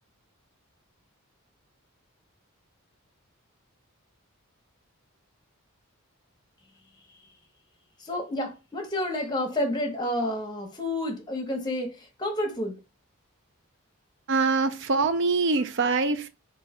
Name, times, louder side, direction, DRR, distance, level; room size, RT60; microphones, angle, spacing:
voice 1, 8.0-12.8, left 1 dB, 20° left, 0.9 m, -30 dB
voice 2, 14.3-16.3, right 4 dB, 55° right, 0.4 m, -24 dB
3.0 x 2.7 x 4.2 m
head